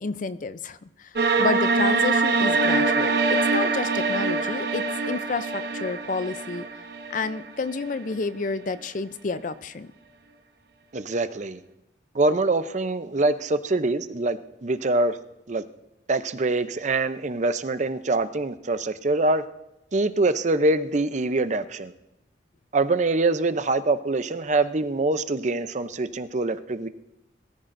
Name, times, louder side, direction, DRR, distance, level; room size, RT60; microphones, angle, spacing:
voice 1, 0.0-6.6 7.1-9.9, left 4 dB, 45° left, 13 dB, 0.5 m, -30 dB
sound 1, 1.2-8.1, right 3 dB, 60° right, 0.9 m, -24 dB
voice 2, 10.9-11.6 12.1-15.2 15.5-15.6 16.1-19.4 19.9-21.9 22.7-26.9, right 2 dB, 40° right, 11 dB, 0.6 m, -24 dB
22.0 x 14.0 x 2.6 m, 0.92 s
head